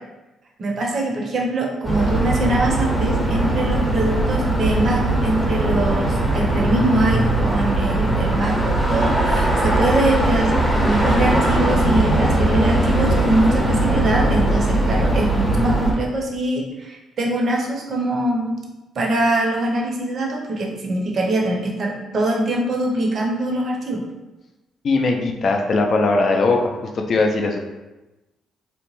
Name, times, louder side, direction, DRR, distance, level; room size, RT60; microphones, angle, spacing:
voice 1, 0.6-10.5 10.8-18.6 19.0-24.0, right 1 dB, 55° right, 0 dB, 0.6 m, -23 dB
sound 1, 1.8-15.9, right 1 dB, ahead, 0.6 m, -20 dB
voice 2, 24.8-27.6, left 3 dB, 50° left, 3 dB, 0.4 m, -19 dB
2.9 x 2.1 x 3.0 m, 1.1 s
cardioid pair, 90°, 0 cm